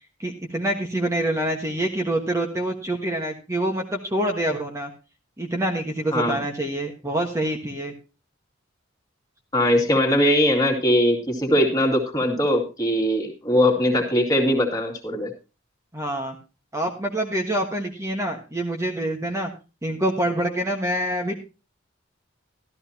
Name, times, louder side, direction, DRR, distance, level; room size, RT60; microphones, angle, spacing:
voice 1, 0.2-4.9 5.4-7.9 15.9-16.4 16.7-19.5 19.8-21.3, right 1 dB, 15° right, 2 dB, 1.3 m, -26 dB
voice 2, 9.5-15.3, equal, 20° left, 1 dB, 2.3 m, -21 dB
13.5 x 13.0 x 2.8 m, 0.30 s
head